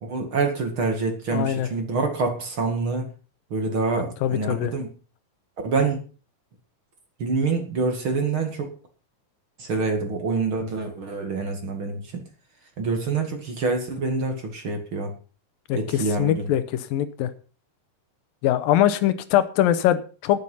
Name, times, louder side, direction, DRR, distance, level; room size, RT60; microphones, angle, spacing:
voice 1, 0.0-3.1 3.5-4.9 5.6-6.0 7.2-8.7 9.6-12.2 12.8-15.1 15.7-16.5, right 4 dB, 40° right, 5 dB, 2.4 m, -26 dB
voice 2, 1.3-1.7 4.2-4.7 15.7-17.3 18.4-20.4, left 12 dB, 90° left, 13 dB, 2.7 m, -22 dB
11.0 x 10.0 x 5.5 m, 0.37 s
omnidirectional pair, 4.0 m